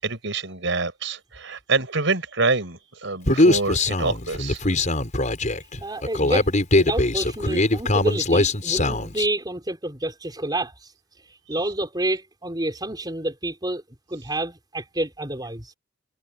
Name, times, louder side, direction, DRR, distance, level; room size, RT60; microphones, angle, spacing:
voice 1, 0.0-4.6, right 3 dB, 65° right, 6.9 m, -26 dB
Human voice, 3.3-9.3, left 2 dB, 40° left, 5.9 m, -21 dB
voice 2, 5.8-6.5 6.7-10.9 11.5-13.8 14.1-15.7, right 1 dB, 20° right, 4.8 m, -28 dB
head